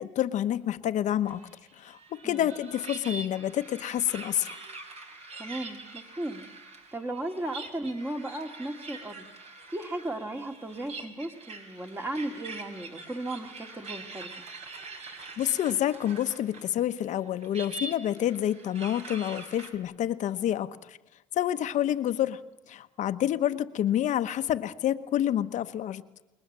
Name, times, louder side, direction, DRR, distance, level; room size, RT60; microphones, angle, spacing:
voice 1, 0.0-1.4 1.8-4.6 15.4-21.0 21.3-22.4 22.7-26.0, left 11 dB, 60° left, 11 dB, 1.1 m, -28 dB
sound 1, 1.3-16.7 17.0-19.7, right 3 dB, 50° right, 4.8 m, -44 dB
voice 2, 5.4-6.5 6.9-9.3 9.7-14.3, right 1 dB, 15° right, 5 dB, 2.5 m, -35 dB
29.5 x 21.0 x 7.5 m, 0.99 s
cardioid pair, 115°, 14 cm